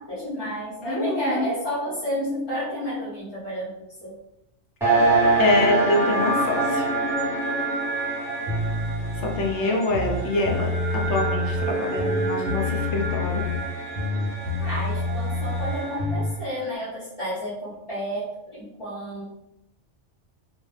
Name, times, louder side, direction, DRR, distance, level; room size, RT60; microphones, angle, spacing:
voice 1, 0.0-4.1 9.6-9.8 14.6-19.2, equal, 30° left, -11 dB, 0.7 m, -31 dB
voice 2, 0.8-1.5 5.4-6.9 9.2-13.5, left 2 dB, 75° left, 2 dB, 0.9 m, -25 dB
sound 1, 4.8-16.2, right 2 dB, 5° right, 0.5 m, -26 dB
sound 2, 8.5-9.5 9.9-11.7 12.0-13.7 14.0-16.3, left 3 dB, 55° right, 0.5 m, -28 dB
2.2 x 2.1 x 3.1 m, 0.86 s
omnidirectional pair, 1.2 m